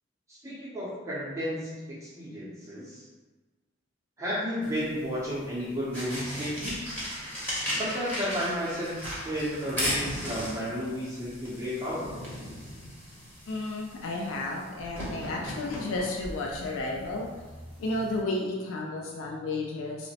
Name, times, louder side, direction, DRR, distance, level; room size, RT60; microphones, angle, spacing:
voice 1, 0.3-3.0 4.2-6.8 7.7-9.0 9.2-12.1, equal, 15° right, -9 dB, 0.5 m, -32 dB
sound 1, 4.6-18.2, equal, 10° left, 0.8 m, -37 dB
voice 2, 13.5-17.3 17.8-20.1, left 2 dB, 85° left, -1 dB, 0.4 m, -32 dB
2.9 x 2.0 x 2.8 m, 1.3 s
head